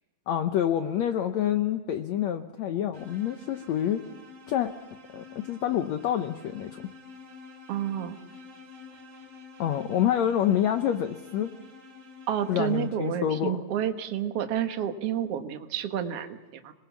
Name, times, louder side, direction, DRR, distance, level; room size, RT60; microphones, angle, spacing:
voice 1, 0.3-4.1 4.5-4.7 5.1-6.8 9.6-11.5 12.5-13.6, left 10 dB, 80° left, 8 dB, 1.6 m, -27 dB
sound 1, 2.9-13.3, left 4 dB, 35° right, 4.2 m, -49 dB
voice 2, 7.7-8.2 12.3-16.7, right 9 dB, 55° right, 7 dB, 1.8 m, -30 dB
26.5 x 21.0 x 7.2 m, 1.2 s
omnidirectional pair, 4.3 m